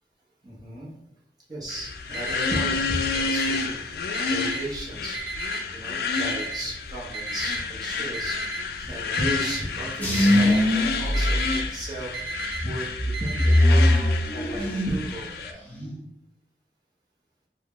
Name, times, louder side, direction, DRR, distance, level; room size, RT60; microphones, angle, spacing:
voice 1, 0.4-0.9 1.5-2.8 3.1-5.2 5.7-8.4 8.8-12.9 13.2-13.9 14.3-15.3, right 1 dB, 25° right, -6 dB, 0.7 m, -35 dB
sound 1, 1.7-15.5, left 5 dB, 55° left, 0.3 m, -30 dB
Alarm, 2.1-2.6 3.1-3.6 4.1-4.6 5.1-5.6 6.1-6.6 7.1-7.6 8.1-8.6 9.1-9.6 10.1-10.6 11.1-11.6 12.1-12.6 13.1-13.6, right 4 dB, 70° right, 0.6 m, -34 dB
sound 2, 10.0-12.0 12.5-15.1 15.4-16.0, left 1 dB, 10° left, 0.6 m, -22 dB
3.4 x 2.1 x 3.5 m, 0.85 s
head